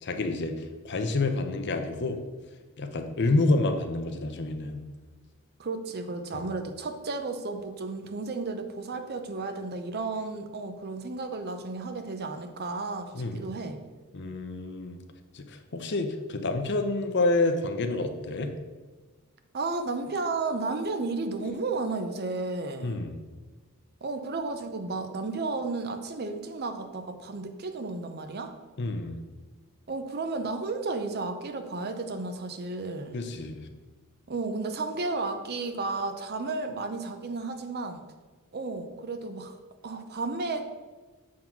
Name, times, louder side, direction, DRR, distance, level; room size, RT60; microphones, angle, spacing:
voice 1, 0.0-2.2 2.8-4.8 6.3-6.5 13.1-13.4 14.1-15.0 15.3-18.5 22.8-23.2 28.8-29.2 33.1-33.6, left 2 dB, 50° left, 7 dB, 0.6 m, -28 dB
voice 2, 5.6-13.8 19.5-23.0 24.0-28.5 29.9-33.2 34.3-38.0 38.5-39.6 39.8-40.7, right 3 dB, 45° right, 7 dB, 0.6 m, -33 dB
7.4 x 3.8 x 5.9 m, 1.3 s
head